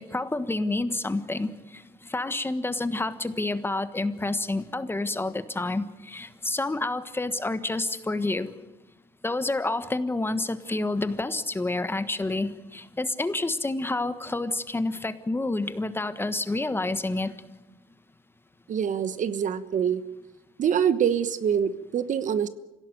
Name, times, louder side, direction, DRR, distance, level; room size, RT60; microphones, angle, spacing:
voice 1, 0.0-8.5 9.2-17.3, left 2 dB, 15° left, 12 dB, 1.3 m, -29 dB
voice 2, 18.7-20.0 20.6-22.5, right 8 dB, 50° right, 14 dB, 1.2 m, -25 dB
26.0 x 17.0 x 9.3 m, 1.0 s
cardioid pair, 110°, 17 cm